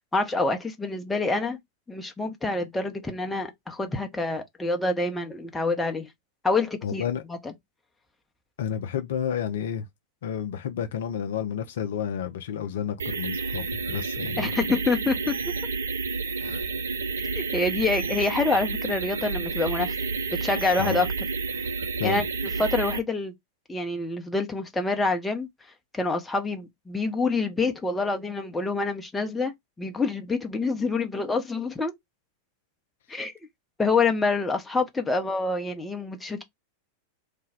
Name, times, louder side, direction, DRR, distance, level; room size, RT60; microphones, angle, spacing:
voice 1, 0.1-1.6 1.9-6.1 6.4-7.0 7.3-7.5 14.4-15.4 17.3-19.9 20.3-21.1 22.0-22.2 22.6-23.3 23.7-25.5 25.9-29.5 29.8-31.9 33.1-33.3 33.8-36.4, left 3 dB, 10° left, 0.7 m, -26 dB
voice 2, 6.8-7.2 8.6-9.9 10.2-14.5 16.4-16.6 20.8-21.0 22.0-22.2, left 8 dB, 60° left, 0.4 m, -30 dB
sound 1, 13.0-23.0, right 4 dB, 70° right, 0.4 m, -30 dB
3.3 x 2.2 x 3.4 m
figure-of-eight pair, 90°, 0 cm